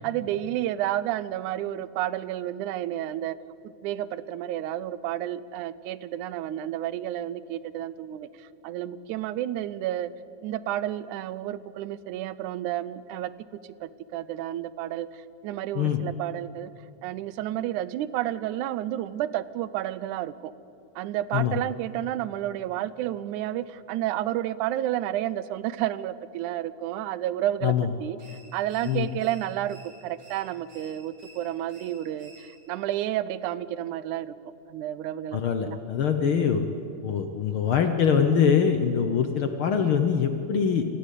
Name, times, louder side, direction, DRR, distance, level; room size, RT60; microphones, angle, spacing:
voice 1, 0.0-3.4 3.6-8.3 8.6-10.1 10.4-13.3 13.8-16.7 17.0-20.5 21.0-27.7 28.0-28.2 28.5-34.3 34.7-35.8, right 13 dB, 90° right, 17 dB, 2.1 m, -31 dB
sound 1, 28.2-32.8, right 1 dB, 55° right, 4.6 m, -53 dB
voice 2, 35.3-36.6 37.0-40.9, left 7 dB, 65° left, 7 dB, 1.3 m, -23 dB
27.0 x 13.5 x 8.4 m, 2.9 s
omnidirectional pair, 3.4 m